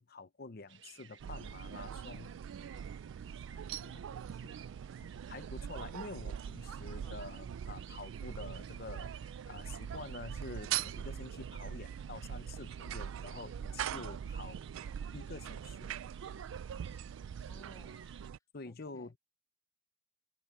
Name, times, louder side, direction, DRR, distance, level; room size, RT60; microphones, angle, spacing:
voice 1, 0.0-2.3 5.3-14.6 15.1-16.0 18.5-19.2, left 3 dB, 50° left, 0.8 m, -48 dB
sound 1, 0.7-18.3, right 9 dB, 60° right, 1.4 m, -57 dB
sound 2, 1.2-18.4, right 9 dB, 80° right, 0.3 m, -42 dB
voice 2, 3.2-4.5 7.0-7.1 11.2-11.3 13.9-14.1 17.5-18.0 18.7-19.1, left 1 dB, 15° left, 0.6 m, -59 dB
open air
head